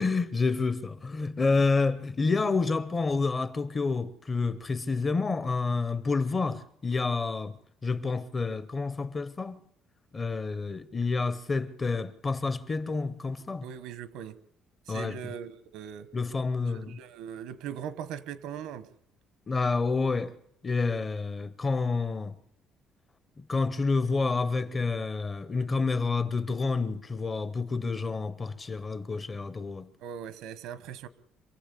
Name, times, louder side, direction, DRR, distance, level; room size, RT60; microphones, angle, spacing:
voice 1, 0.0-7.6 7.8-9.6 10.1-13.6 14.9-15.2 16.1-17.0 19.5-20.3 20.6-22.3 23.4-29.9, left 4 dB, 20° left, 0.8 m, -29 dB
voice 2, 13.6-14.4 14.9-16.1 16.7-18.9 30.0-31.1, right 9 dB, 90° right, 1.3 m, -40 dB
26.0 x 15.5 x 8.5 m
cardioid pair, 165°, 0 cm